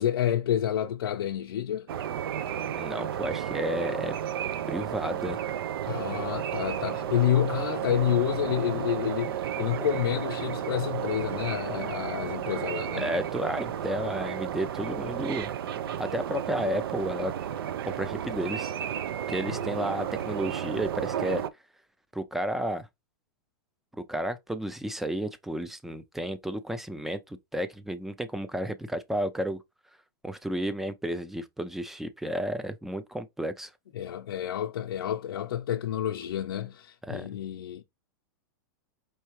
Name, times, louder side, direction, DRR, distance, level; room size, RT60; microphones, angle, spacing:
voice 1, 0.0-1.9 5.9-13.1 19.5-19.6 33.9-37.8, left 10 dB, 90° left, 0.6 m, -29 dB
sound 1, 1.9-21.5, right 10 dB, 80° right, 0.5 m, -33 dB
voice 2, 2.8-4.1 4.7-5.4 13.0-15.5 16.0-17.3 17.9-18.7 19.3-21.4 22.1-22.9 23.9-29.6 30.2-33.7 37.1-37.3, right 1 dB, ahead, 0.4 m, -32 dB
4.5 x 2.8 x 3.0 m
supercardioid pair, 150°, 12 cm